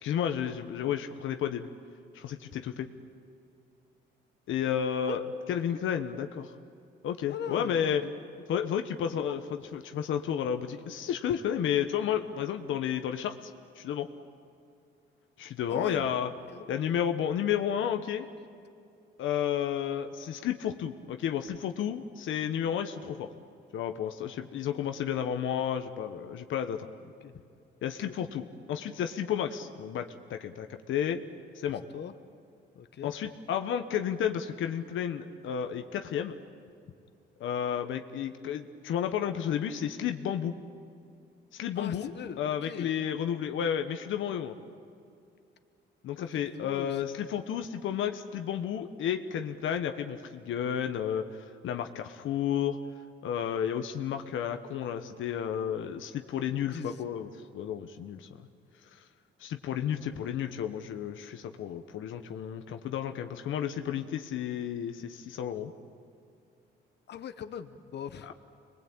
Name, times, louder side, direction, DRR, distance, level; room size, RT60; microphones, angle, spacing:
voice 1, 0.0-1.7 2.1-2.9 4.5-5.2 5.5-6.5 7.0-8.0 8.5-9.4 9.7-13.3 13.8-14.1 15.4-16.3 16.7-18.3 19.2-23.3 23.7-26.9 27.8-31.2 31.5-31.8 33.0-36.3 37.4-40.5 41.5-44.6 46.0-52.8 53.2-58.3 59.4-65.7 68.2-68.3, left 9 dB, 80° left, 7 dB, 1.2 m, -32 dB
voice 2, 7.3-8.1 9.3-9.4 15.7-16.1 16.5-16.8 27.2-27.4 28.0-28.1 31.7-32.1 32.7-33.1 41.8-42.9 46.2-46.3 46.5-47.2 56.5-57.0 60.1-60.2 67.1-68.3, left 8 dB, 60° left, 9 dB, 1.3 m, -40 dB
26.5 x 21.5 x 8.8 m, 2.4 s
cardioid pair, 90°, 20 cm